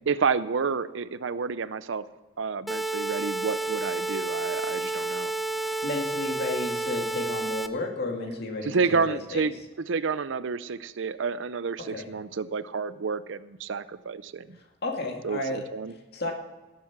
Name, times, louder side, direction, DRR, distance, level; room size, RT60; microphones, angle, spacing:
voice 1, 0.1-2.0 2.4-5.3 8.6-9.5 9.9-14.6 15.2-15.9, right 5 dB, 65° right, 15 dB, 0.5 m, -29 dB
sound 1, 2.7-7.7, right 2 dB, ahead, 0.5 m, -30 dB
voice 2, 5.8-9.4 11.8-12.1 14.5-15.6 16.1-16.3, left 2 dB, 55° left, 1 dB, 2.2 m, -32 dB
18.0 x 7.5 x 6.0 m, 1.2 s
head